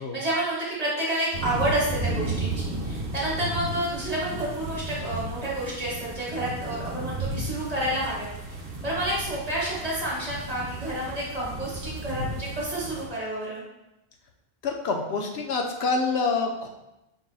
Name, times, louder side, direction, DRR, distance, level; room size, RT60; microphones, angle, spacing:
voice 1, 0.0-8.3 8.8-13.6, right 1 dB, 35° right, -6 dB, 1.4 m, -29 dB
sound 1, 1.3-13.1, right 2 dB, 60° right, 0.9 m, -34 dB
voice 2, 14.6-16.7, left 4 dB, 75° left, 2 dB, 0.8 m, -26 dB
4.6 x 3.8 x 2.3 m, 0.91 s
omnidirectional pair, 1.1 m